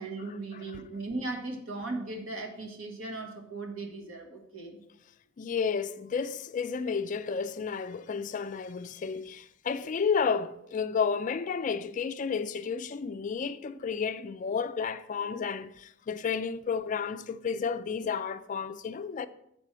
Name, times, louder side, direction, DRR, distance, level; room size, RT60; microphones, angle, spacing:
voice 1, 0.0-4.8, right 2 dB, 80° right, 1.6 m, -37 dB
voice 2, 5.4-19.3, left 6 dB, 40° left, 0.3 m, -32 dB
7.5 x 4.5 x 6.1 m
head